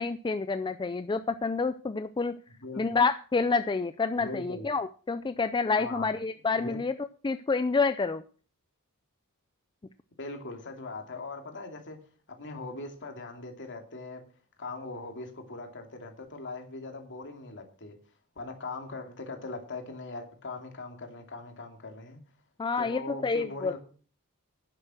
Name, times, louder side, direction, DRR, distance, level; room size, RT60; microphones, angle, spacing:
voice 1, 0.0-2.4 2.8-6.9 7.2-8.2 22.6-23.8, left 4 dB, 20° left, 11 dB, 0.4 m, -28 dB
voice 2, 4.2-4.7 5.8-6.1 6.5-6.8 10.2-12.0 12.3-14.3 14.6-18.0 18.4-22.2 22.8-23.8, left 3 dB, 55° left, 4 dB, 2.6 m, -40 dB
11.0 x 7.7 x 6.2 m, 0.42 s
head